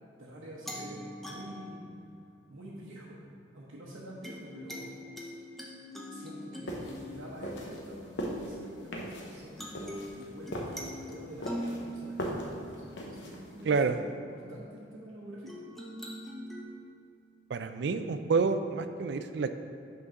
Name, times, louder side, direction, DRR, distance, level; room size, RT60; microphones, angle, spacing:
voice 1, 0.2-1.8 2.5-3.2 3.5-5.0 6.1-15.5, right 1 dB, 85° right, -7 dB, 0.9 m, -47 dB
sound 1, 0.6-2.9 4.2-9.0 9.6-13.7 15.5-16.6, equal, ahead, 0.6 m, -43 dB
sound 2, 6.7-13.6, equal, 70° left, 0.9 m, -39 dB
voice 2, 13.6-14.0 17.5-19.5, right 4 dB, 60° right, 9 dB, 0.3 m, -28 dB
6.3 x 3.8 x 5.8 m, 2.5 s
head